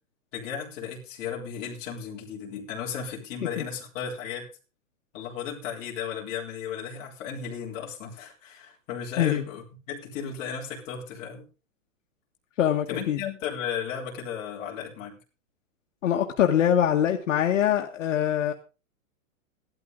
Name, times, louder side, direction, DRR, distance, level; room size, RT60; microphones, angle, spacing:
voice 1, 0.3-4.5 5.1-11.5 12.9-15.2, left 7 dB, 25° left, -3 dB, 3.6 m, -35 dB
voice 2, 12.6-13.2 16.0-18.5, left 10 dB, 60° left, 3 dB, 1.5 m, -23 dB
16.0 x 12.5 x 3.8 m, 0.33 s
supercardioid pair, 180°, 42 cm